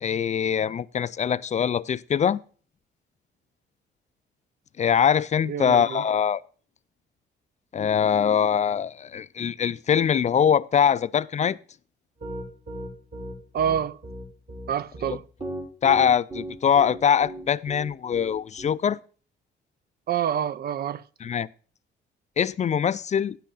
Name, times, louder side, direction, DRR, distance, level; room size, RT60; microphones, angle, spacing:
voice 1, 0.0-2.4 4.8-6.4 7.7-11.6 15.8-19.0 21.2-21.5 22.4-23.4, left 8 dB, 35° left, 0.4 m, -23 dB
voice 2, 5.4-6.0 13.5-14.0 14.7-15.3 20.1-21.0, right 9 dB, 50° right, 0.4 m, -27 dB
Piano, 12.2-18.7, right 1 dB, 30° right, 3.7 m, -36 dB
13.0 x 10.0 x 2.4 m
cardioid pair, 90°, 20 cm